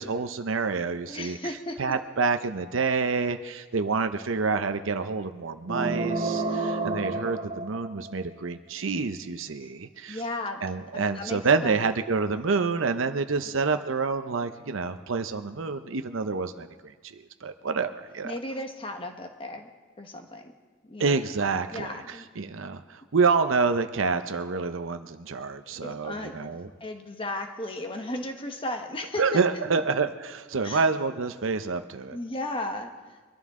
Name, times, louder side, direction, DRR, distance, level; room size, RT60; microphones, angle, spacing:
voice 1, 0.0-1.4 1.8-10.2 10.6-18.3 21.0-26.7 29.2-32.2, right 4 dB, 85° right, 8 dB, 0.7 m, -28 dB
voice 2, 1.1-1.8 6.5-6.7 10.1-10.6 10.9-11.8 18.2-19.7 20.0-20.5 20.8-21.2 21.7-22.3 25.8-26.4 26.8-29.4 30.6-30.8 32.1-33.2, left 1 dB, 25° left, 5 dB, 1.3 m, -35 dB
sound 1, 5.7-8.3, right 3 dB, 30° right, 0.8 m, -30 dB
23.5 x 13.0 x 3.7 m, 1.4 s
head